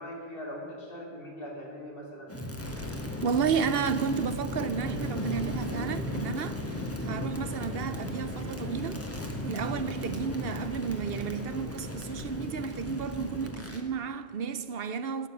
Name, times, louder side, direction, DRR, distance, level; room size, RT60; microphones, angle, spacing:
voice 1, 0.0-2.3, equal, 60° left, 3.1 m, -41 dB
Crackle, 2.3-13.9, left 1 dB, 15° left, 1.4 m, -36 dB
voice 2, 3.2-15.3, right 6 dB, 70° right, 0.9 m, -32 dB
12.0 x 8.0 x 10.0 m
omnidirectional pair, 1.1 m